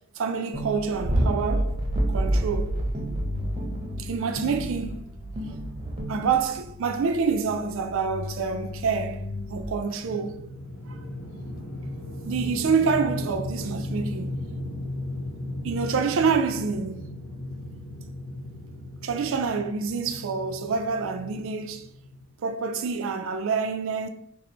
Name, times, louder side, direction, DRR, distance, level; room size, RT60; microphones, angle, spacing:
voice 1, 0.2-1.8 2.1-2.7 4.0-5.0 6.1-9.2 9.5-10.4 12.2-14.4 15.6-17.0 19.0-21.8 22.4-24.1, right 5 dB, 60° right, 0.3 m, -27 dB
sound 1, 0.5-6.7, right 1 dB, 25° right, 0.7 m, -28 dB
sound 2, 3.2-5.8 6.2-9.6, left 3 dB, 30° left, 0.5 m, -38 dB
sound 3, 10.0-22.2, left 1 dB, 75° left, 0.9 m, -36 dB
4.2 x 2.0 x 3.9 m
head